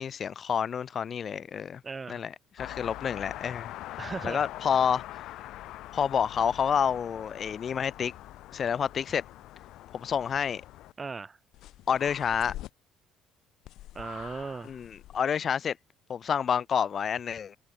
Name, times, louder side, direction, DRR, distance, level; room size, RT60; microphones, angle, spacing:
voice 1, 0.0-1.8 2.1-3.7 4.2-5.0 5.9-8.1 8.5-9.2 9.9-10.6 11.9-12.5 14.6-15.8 16.1-17.6, left 7 dB, 40° left, 0.4 m, -29 dB
voice 2, 1.8-2.2 4.0-4.5 11.0-11.4 13.9-14.7, right 4 dB, 25° right, 2.6 m, -37 dB
sound 1, 2.6-10.9 11.5-12.7 13.7-15.2, left 15 dB, 55° left, 2.7 m, -43 dB
figure-of-eight pair, 50°, 0 cm